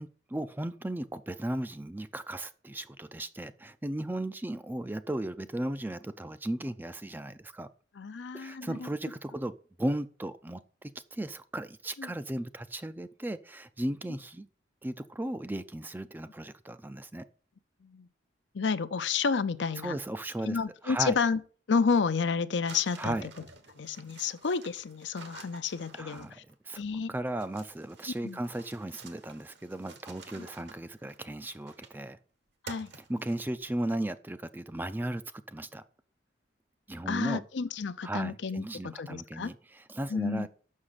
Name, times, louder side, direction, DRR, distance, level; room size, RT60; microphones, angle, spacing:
voice 1, 0.0-7.7 8.3-14.5 14.8-17.3 19.8-20.6 20.8-21.2 23.0-23.3 24.2-24.3 25.9-26.8 27.1-32.2 32.9-35.8 36.9-37.4 38.0-40.5, right 1 dB, 10° right, 0.4 m, -36 dB
voice 2, 8.0-8.9 12.0-12.1 17.8-18.1 18.5-20.0 20.4-21.4 21.7-23.2 23.8-26.4 26.8-27.1 28.2-28.4 30.4-30.5 32.6-32.9 37.1-39.5 40.1-40.5, left 5 dB, 70° left, 0.6 m, -30 dB
sound 1, 22.7-26.5 27.4-32.1 32.7-33.7, right 4 dB, 65° right, 1.2 m, -50 dB
6.5 x 6.0 x 5.7 m
head